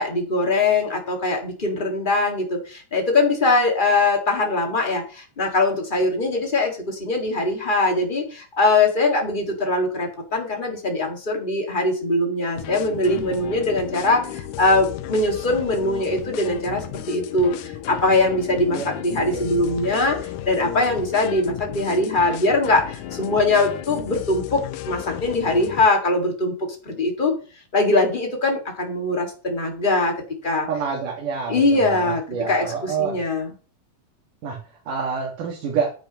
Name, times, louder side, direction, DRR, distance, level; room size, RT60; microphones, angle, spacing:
voice 1, 0.0-27.3 27.7-30.1 30.4-30.7 31.5-33.5, left 2 dB, 20° left, 2 dB, 1.4 m, -22 dB
sound 1, 12.5-25.9, left 12 dB, 80° left, 2.1 m, -34 dB
voice 2, 30.7-33.2 34.4-34.6 34.9-35.9, right 6 dB, 85° right, -1 dB, 3.4 m, -27 dB
9.8 x 8.3 x 3.0 m, 0.37 s
omnidirectional pair, 3.6 m